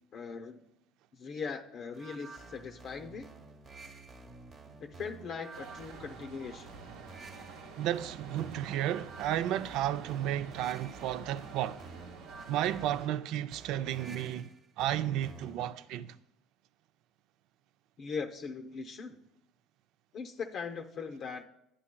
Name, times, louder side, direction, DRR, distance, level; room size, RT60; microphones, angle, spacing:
voice 1, 0.1-0.6 1.1-3.3 4.8-6.7 18.0-19.2 20.1-21.5, left 5 dB, 45° left, 0.6 m, -40 dB
sound 1, 1.9-15.7, right 3 dB, 40° right, 1.0 m, -51 dB
sound 2, 5.5-13.1, right 4 dB, 85° right, 1.1 m, -49 dB
voice 2, 7.8-11.8 12.5-14.5 14.8-16.2, right 12 dB, 70° right, 0.3 m, -33 dB
11.0 x 9.7 x 2.2 m
supercardioid pair, 110°, 0 cm